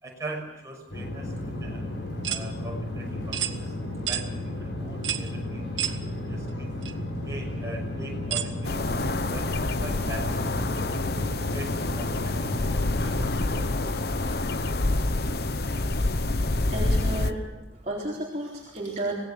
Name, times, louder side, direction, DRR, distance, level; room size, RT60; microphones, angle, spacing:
voice 1, 0.0-1.8 2.3-3.8 4.0-5.8 6.3-6.7 7.2-10.4 10.8-11.0 11.5-13.2, right 2 dB, 15° right, -1 dB, 6.0 m, -41 dB
sound 1, 0.9-13.7, left 1 dB, 70° left, 7.0 m, -33 dB
sound 2, 2.2-2.5 3.3-3.6 4.1-4.3 5.0-5.3 5.8-6.0 6.8-6.9 8.3-8.5, right 10 dB, 85° right, 1.4 m, -29 dB
sound 3, 8.6-17.3, left 2 dB, 55° left, 1.0 m, -27 dB
voice 2, 16.7-17.4 17.7-19.1, right 1 dB, 40° right, -4 dB, 3.8 m, -32 dB
25.0 x 18.5 x 7.0 m, 1.0 s
head